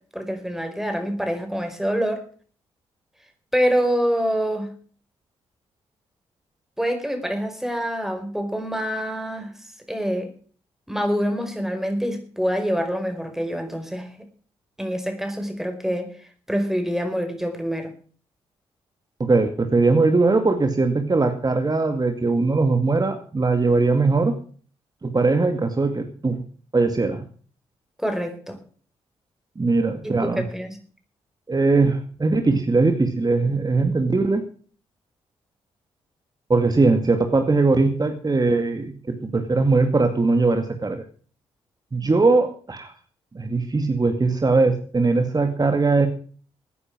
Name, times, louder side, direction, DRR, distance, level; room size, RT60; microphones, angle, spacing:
voice 1, 0.1-2.2 3.5-4.7 6.8-9.5 9.9-10.3 10.9-14.1 14.8-16.1 16.5-17.9 28.0-28.6 30.0-30.8, equal, 5° right, 6 dB, 4.9 m, -26 dB
voice 2, 19.2-24.3 25.0-26.4 26.7-27.2 29.6-30.4 31.5-34.4 36.5-41.0 41.9-42.9 43.3-46.1, right 3 dB, 30° right, 6 dB, 2.2 m, -20 dB
17.0 x 9.6 x 6.2 m, 0.43 s
hypercardioid pair, 45°, 13 cm